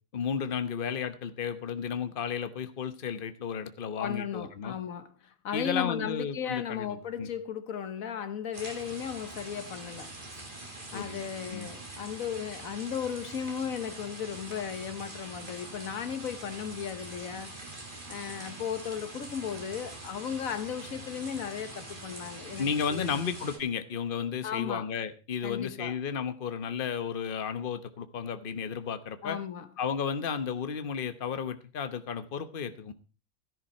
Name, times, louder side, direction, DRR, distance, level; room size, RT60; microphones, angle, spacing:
voice 1, 0.1-4.7 5.5-7.3 10.9-11.2 11.5-11.7 22.6-29.4 29.8-32.9, left 7 dB, 45° left, 1.1 m, -33 dB
voice 2, 4.0-10.1 10.9-17.6 18.1-23.2 24.4-24.9 25.4-26.0 29.2-29.7, left 8 dB, 80° left, 1.5 m, -36 dB
sound 1, 8.5-23.6, right 2 dB, 35° right, 2.9 m, -44 dB
13.5 x 11.0 x 4.3 m
omnidirectional pair, 1.4 m